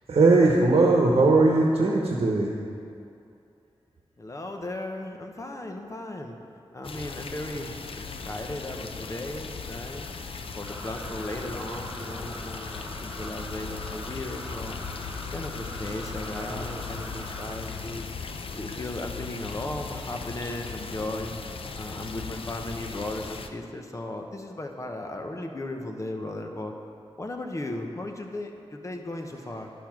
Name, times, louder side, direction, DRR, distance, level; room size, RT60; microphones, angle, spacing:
voice 1, 0.1-2.5, right 3 dB, 70° right, 0 dB, 1.1 m, -19 dB
voice 2, 4.2-6.4 6.7-10.1 10.5-14.7 15.3-18.0 18.6-21.4 21.8-26.7 27.2-29.7, left 1 dB, 30° left, 3 dB, 0.9 m, -36 dB
sound 1, 6.8-23.5, left 5 dB, 65° left, 0.5 m, -38 dB
sound 2, 10.6-17.5, equal, 10° right, 2.5 m, -43 dB
11.0 x 6.9 x 6.0 m, 2.5 s
wide cardioid pair, 110°, 10 cm